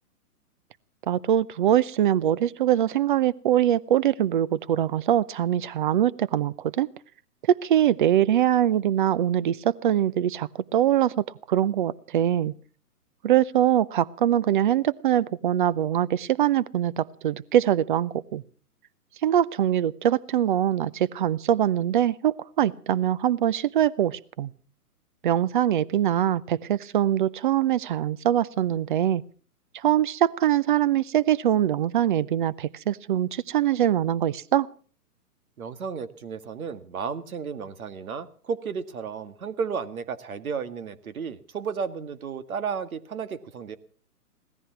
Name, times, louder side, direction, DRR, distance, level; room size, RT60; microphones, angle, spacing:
voice 1, 1.1-6.9 7.5-12.5 13.2-18.4 19.2-24.5 25.2-29.2 29.8-34.7, right 11 dB, 35° right, 20 dB, 0.7 m, -23 dB
voice 2, 35.6-43.8, right 6 dB, 65° right, 12 dB, 1.9 m, -33 dB
17.5 x 14.0 x 6.0 m, 0.43 s
hypercardioid pair, 140°, 46 cm